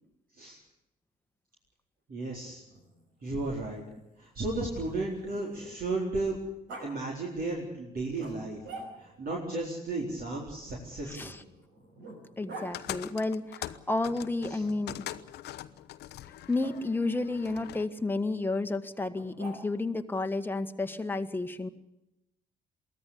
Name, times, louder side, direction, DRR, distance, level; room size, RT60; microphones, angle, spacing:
voice 1, 2.1-2.6 3.2-3.8 4.2-6.4 6.8-8.6 9.0-11.4 14.5-14.6, right 2 dB, 50° right, -2 dB, 4.2 m, -34 dB
Growling, 2.6-6.0 6.7-6.9 8.2-9.3 10.6-12.7 14.6-15.3 16.6-16.8 19.1-19.9, right 2 dB, 65° right, 5.3 m, -47 dB
voice 2, 11.1-11.4 12.4-15.0 16.5-21.7, left 2 dB, 10° left, 7 dB, 1.6 m, -31 dB
sound 1, 12.7-17.9, left 13 dB, 55° left, 0.9 m, -42 dB
23.0 x 17.0 x 8.4 m, 0.90 s
figure-of-eight pair, 45°, 20 cm